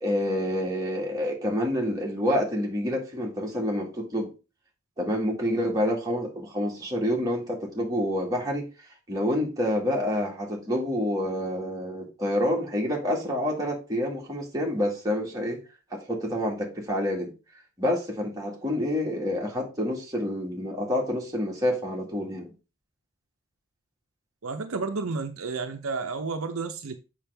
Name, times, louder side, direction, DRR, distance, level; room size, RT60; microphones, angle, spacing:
voice 1, 0.0-4.3 5.0-15.6 15.9-17.3 17.8-22.5, left 1 dB, 15° right, 1.8 m, -28 dB
voice 2, 24.4-27.0, right 4 dB, 65° right, 0.7 m, -31 dB
7.1 x 5.3 x 3.4 m
head